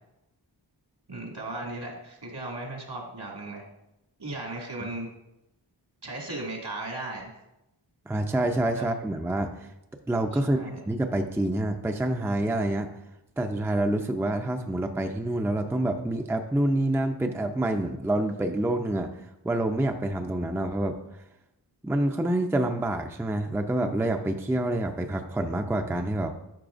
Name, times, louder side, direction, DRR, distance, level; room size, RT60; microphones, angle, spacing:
voice 1, 1.1-3.6 4.2-5.1 6.0-7.3 8.8-8.9 10.4-10.8, right 2 dB, 70° right, -1 dB, 2.2 m, -36 dB
voice 2, 8.1-9.7 10.1-12.9 13.4-19.1 19.4-21.0 21.8-26.3, right 1 dB, 5° right, 5 dB, 0.5 m, -27 dB
12.0 x 6.1 x 2.5 m, 0.90 s
wide cardioid pair, 80°, 43 cm